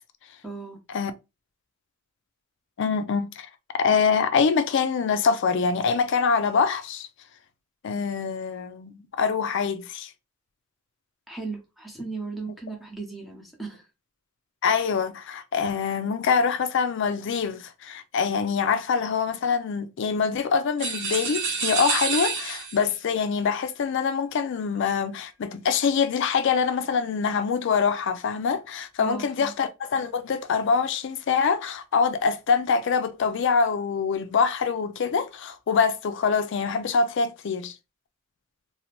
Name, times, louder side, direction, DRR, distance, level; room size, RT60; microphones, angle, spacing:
voice 1, 0.4-0.8 11.3-13.9 29.0-29.6, right 4 dB, ahead, 0.8 m, -36 dB
voice 2, 2.8-3.5 3.8-7.1 7.8-10.1 14.6-37.7, left 5 dB, 60° left, 0.4 m, -24 dB
sound 1, 20.8-23.0, right 5 dB, 60° right, 0.8 m, -28 dB
2.7 x 2.0 x 2.9 m
head